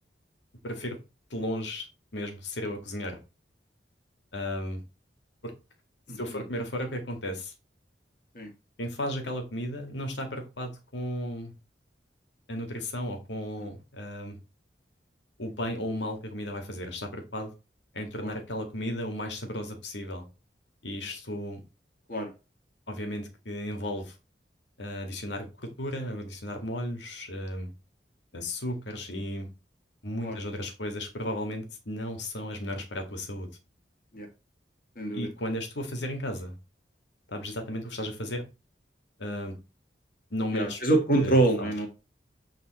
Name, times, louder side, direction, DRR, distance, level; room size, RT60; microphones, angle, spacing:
voice 1, 0.6-1.0 1.3-1.9 2.1-3.2 4.3-4.8 5.4-5.5 6.2-7.5 8.8-11.5 12.5-14.4 15.4-17.5 17.9-20.2 20.8-21.6 22.9-24.1 24.8-27.7 28.3-29.5 30.0-33.5 35.1-36.5 37.3-38.4 39.2-39.6 40.3-40.8 41.2-41.7, left 1 dB, 85° left, 4 dB, 2.1 m, -34 dB
voice 2, 6.1-6.4 8.3-8.5 13.6-13.7 18.2-18.3 22.1-22.3 30.2-30.4 34.1-34.3 35.0-35.3 40.5-41.9, right 2 dB, 50° left, 3 dB, 2.1 m, -26 dB
8.3 x 4.1 x 4.3 m, 0.29 s
head